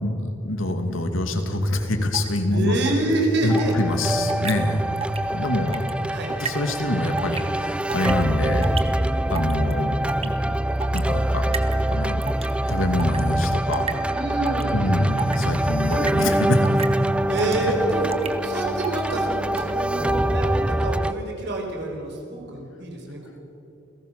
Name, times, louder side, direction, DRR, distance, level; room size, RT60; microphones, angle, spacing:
voice 1, 0.0-2.8 3.4-4.8 5.3-5.9 6.4-8.7 9.3-9.9 10.2-10.3 10.9-11.4 11.9-12.2 12.6-13.9 14.7-16.7, left 1 dB, 90° left, 5 dB, 2.5 m, -24 dB
sound 1, 2.1-2.4 2.8-3.1 3.6-3.7 4.3-4.5 5.0-5.2 5.4-5.9 6.4-6.6 7.2-7.4 7.8-8.2 8.6-8.8 9.3-9.7 10.1-10.3 10.8-11.0 11.5-11.8 12.2-12.5 13.0-13.2 13.7-13.9 14.4-14.7 15.2-15.4 15.9-16.1 16.6-16.9 17.4-17.6 18.1-18.3 18.8-19.0 19.5-19.7, right 6 dB, 30° right, 1.4 m, -30 dB
voice 2, 2.5-3.8 6.1-6.3 9.1-9.2 12.7-13.0 14.1-15.0 17.3-18.1 18.4-23.4, right 1 dB, 60° right, 1 dB, 5.1 m, -27 dB
sound 2, 3.5-21.1, right 1 dB, 5° right, 0.4 m, -25 dB
28.5 x 17.0 x 6.9 m, 2.9 s
head